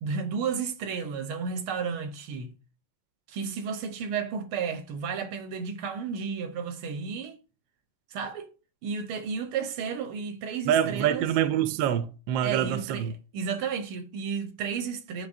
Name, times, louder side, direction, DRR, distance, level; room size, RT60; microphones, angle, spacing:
voice 1, 0.0-2.6 3.3-7.4 8.1-8.5 8.8-11.3 12.4-15.3, right 6 dB, 85° right, 1.8 m, -32 dB
voice 2, 10.7-13.1, right 10 dB, 70° right, 1.3 m, -26 dB
9.7 x 3.7 x 2.7 m
omnidirectional pair, 2.3 m